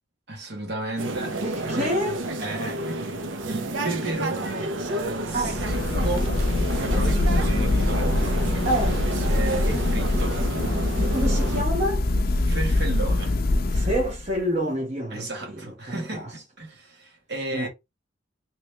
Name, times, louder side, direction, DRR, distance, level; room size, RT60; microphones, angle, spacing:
voice 1, 0.3-1.9 2.4-6.3 6.7-8.2 9.3-10.4 12.4-13.4 15.1-17.7, right 2 dB, 60° right, 1.5 m, -33 dB
sound 1, 1.0-11.6, right 2 dB, 90° right, 0.7 m, -30 dB
voice 2, 1.4-2.2 5.3-5.6 8.6-9.0 11.0-12.1 13.7-16.3 17.5-17.7, equal, 35° right, 1.0 m, -28 dB
sound 2, 5.2-14.4, left 2 dB, 50° left, 0.5 m, -24 dB
3.0 x 3.0 x 3.2 m
head